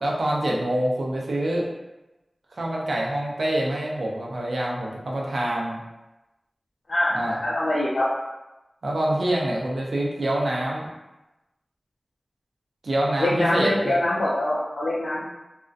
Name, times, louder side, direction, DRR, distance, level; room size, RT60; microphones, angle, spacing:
voice 1, 0.0-1.7 2.5-5.8 7.1-7.4 8.8-10.9 12.8-14.0, right 1 dB, 85° right, -3 dB, 0.4 m, -26 dB
voice 2, 7.4-8.0 13.2-15.2, left 1 dB, 85° left, -7 dB, 0.4 m, -24 dB
2.5 x 2.1 x 2.4 m, 1.0 s
wide cardioid pair, 55°, 0 cm